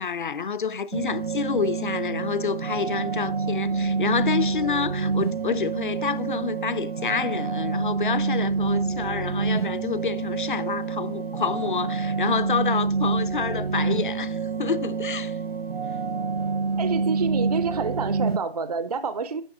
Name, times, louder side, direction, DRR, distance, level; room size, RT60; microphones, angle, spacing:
voice 1, 0.0-15.4, left 6 dB, 55° left, 0.6 m, -28 dB
sound 1, 0.9-18.4, right 4 dB, 75° right, 0.9 m, -27 dB
voice 2, 16.8-19.4, right 5 dB, 40° right, 0.4 m, -28 dB
10.0 x 6.2 x 3.8 m
figure-of-eight pair, 150°, 31 cm